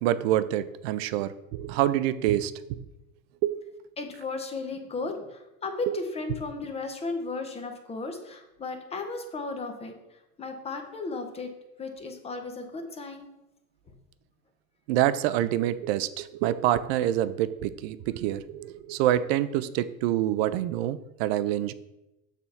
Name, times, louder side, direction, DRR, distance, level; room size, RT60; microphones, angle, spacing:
voice 1, 0.0-2.8 3.4-3.5 5.9-6.0 14.9-21.7, right 12 dB, 50° right, 15 dB, 0.5 m, -26 dB
voice 2, 4.0-10.0 10.4-11.5 11.8-13.3, left 3 dB, 15° left, 5 dB, 0.8 m, -35 dB
6.9 x 3.5 x 5.7 m, 0.94 s
supercardioid pair, 130°, 43 cm